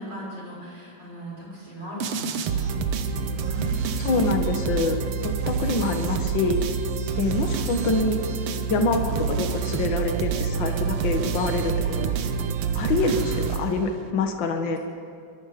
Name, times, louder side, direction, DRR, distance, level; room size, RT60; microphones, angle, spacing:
voice 1, 0.0-4.3 7.1-7.5 13.0-13.8, right 1 dB, 30° right, -4 dB, 7.2 m, -38 dB
sound 1, 2.0-14.1, right 6 dB, 65° right, 1.7 m, -27 dB
voice 2, 4.0-6.6 7.2-8.2 8.7-12.1 12.8-14.8, left 3 dB, 45° left, 5 dB, 1.8 m, -26 dB
25.5 x 23.0 x 5.2 m, 2.3 s
omnidirectional pair, 3.9 m